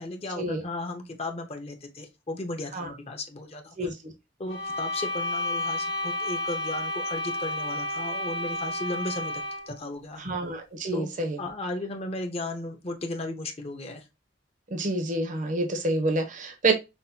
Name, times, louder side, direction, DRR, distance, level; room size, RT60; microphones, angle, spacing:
voice 1, 0.0-3.9 4.4-9.3 9.7-10.2 10.9-11.1 11.4-14.0, left 2 dB, 35° left, 0.8 m, -35 dB
voice 2, 3.8-4.1 10.2-11.4 14.7-16.7, right 2 dB, 45° right, 0.8 m, -28 dB
sound 1, 4.5-9.8, left 2 dB, 70° left, 1.3 m, -31 dB
5.8 x 2.1 x 2.7 m
head